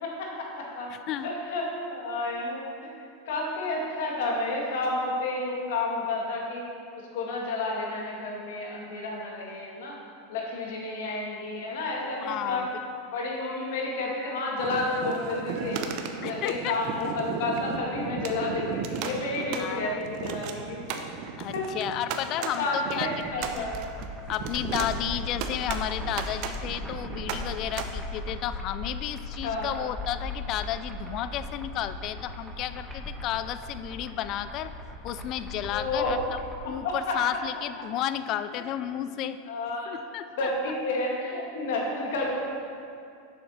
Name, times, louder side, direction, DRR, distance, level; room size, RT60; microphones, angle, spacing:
voice 1, 0.0-0.9 1.2-2.6 3.3-6.6 7.1-10.0 10.3-12.7 13.1-15.8 16.2-21.1 21.5-21.7 22.4-23.8 29.4-29.9 35.7-36.1 36.8-37.2 38.6-38.7 39.5-39.9 40.4-42.5, left 2 dB, 75° left, -2 dB, 2.1 m, -31 dB
voice 2, 0.9-1.3 12.2-12.7 16.2-16.7 19.6-20.0 21.4-23.1 23.4-23.7 24.3-34.7 35.0-36.2 36.6-39.4 39.9-40.5, left 11 dB, 45° left, 12 dB, 0.4 m, -32 dB
sound 1, 14.6-27.8, right 6 dB, 55° right, 0.8 m, -35 dB
sound 2, 23.2-36.6, left 2 dB, 10° right, 1.3 m, -38 dB
7.3 x 6.8 x 5.8 m, 2.4 s
supercardioid pair, 120°, 0 cm